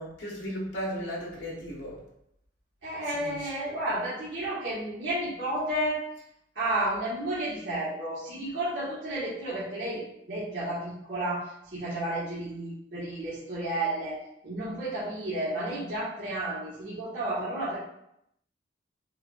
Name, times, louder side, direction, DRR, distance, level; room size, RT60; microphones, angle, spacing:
voice 1, 0.0-2.0 3.1-3.5, equal, 80° left, -4 dB, 1.0 m, -36 dB
voice 2, 2.8-6.1 6.5-10.0 10.3-17.8, right 1 dB, 80° right, -11 dB, 1.4 m, -32 dB
7.6 x 2.6 x 2.4 m, 0.77 s
head